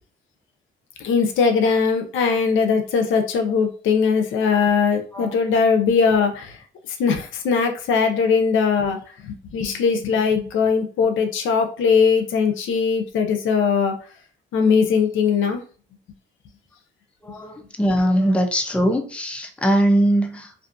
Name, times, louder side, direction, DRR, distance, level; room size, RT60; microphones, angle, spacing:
voice 1, 1.0-6.6 7.0-9.0 9.2-13.9 14.5-15.6, left 5 dB, 80° left, 6 dB, 0.6 m, -20 dB
voice 2, 17.2-20.5, right 1 dB, 5° left, 4 dB, 0.5 m, -21 dB
2.5 x 2.4 x 2.5 m, 0.40 s
cardioid pair, 90°, 20 cm